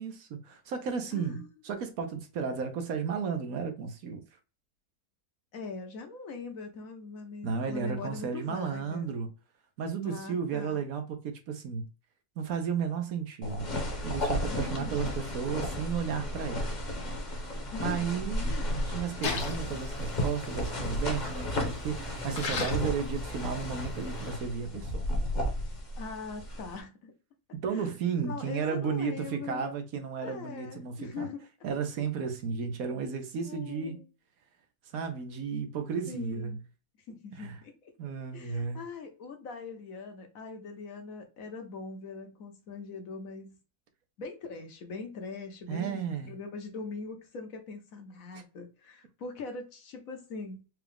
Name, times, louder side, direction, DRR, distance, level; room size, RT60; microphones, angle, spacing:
voice 1, 0.0-4.2 7.4-9.3 9.8-11.9 12.4-13.7 14.0-16.7 17.8-18.5 18.8-25.0 27.5-31.3 31.6-34.0 34.9-36.6 37.4-37.6 38.0-38.8 45.7-46.3 48.3-48.4, right 6 dB, 70° right, 1.2 m, -33 dB
voice 2, 1.1-1.5 5.5-9.1 10.0-10.8 14.5-15.0 17.7-18.9 26.0-27.1 27.7-29.6 30.2-31.4 33.4-34.1 36.1-36.6 37.1-37.9 38.3-43.6 44.2-50.7, left 4 dB, 65° left, 1.3 m, -42 dB
sound 1, 13.4-26.8, left 1 dB, 35° left, 1.0 m, -33 dB
Splash splatter, 19.2-24.3, left 3 dB, 85° left, 1.6 m, -39 dB
4.7 x 2.4 x 3.4 m
omnidirectional pair, 1.6 m